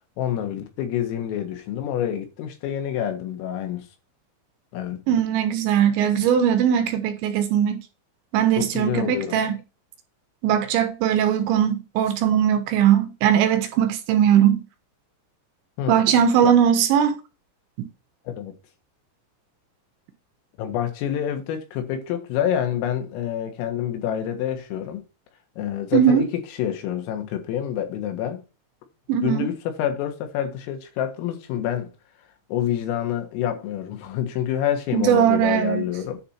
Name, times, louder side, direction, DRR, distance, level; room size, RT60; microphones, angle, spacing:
voice 1, 0.2-3.9 4.7-5.0 8.6-9.4 15.8-16.0 16.4-16.5 18.3-18.5 20.6-25.0 25.6-26.3 26.6-28.4 29.2-31.9 32.5-36.2, left 10 dB, 85° left, 4.1 m, -27 dB
voice 2, 5.1-7.8 8.3-9.6 10.4-14.6 15.9-17.2 25.9-26.2 29.1-29.5 34.9-35.9, right 9 dB, 75° right, 3.1 m, -19 dB
10.0 x 4.2 x 5.8 m
omnidirectional pair, 5.9 m